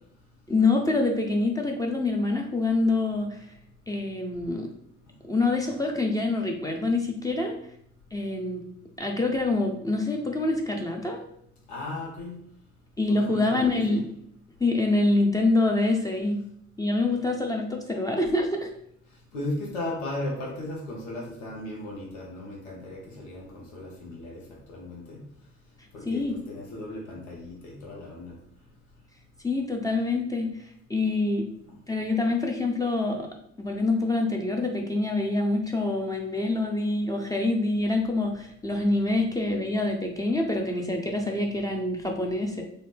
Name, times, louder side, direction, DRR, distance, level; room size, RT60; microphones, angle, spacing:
voice 1, 0.5-3.4 3.9-4.7 5.3-7.5 8.1-8.6 9.0-11.2 13.0-14.0 14.6-16.4 16.8-18.7 26.1-26.4 29.4-30.5 30.9-31.5 31.9-33.3 33.6-42.6, left 2 dB, 10° left, 1 dB, 0.6 m, -26 dB
voice 2, 11.7-12.4 13.1-14.0 19.3-24.4 24.7-25.2 25.9-28.3, left 1 dB, 75° left, -2 dB, 0.9 m, -36 dB
3.8 x 2.1 x 3.3 m, 0.70 s
figure-of-eight pair, 50°, 36 cm